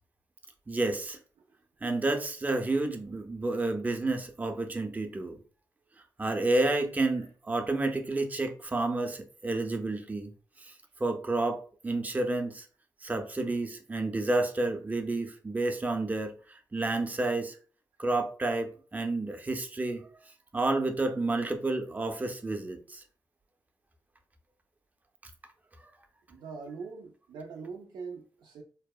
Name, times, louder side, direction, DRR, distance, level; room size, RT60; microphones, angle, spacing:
voice 1, 0.7-1.2 1.8-5.4 6.2-10.3 10.6-10.7 11.0-12.7 13.0-17.5 18.0-20.1 20.5-23.0 25.8-25.9, right 2 dB, 20° right, 0.5 m, -30 dB
voice 2, 26.3-28.6, right 5 dB, 85° right, 0.4 m, -42 dB
2.7 x 2.1 x 2.2 m
cardioid pair, 65°, 7 cm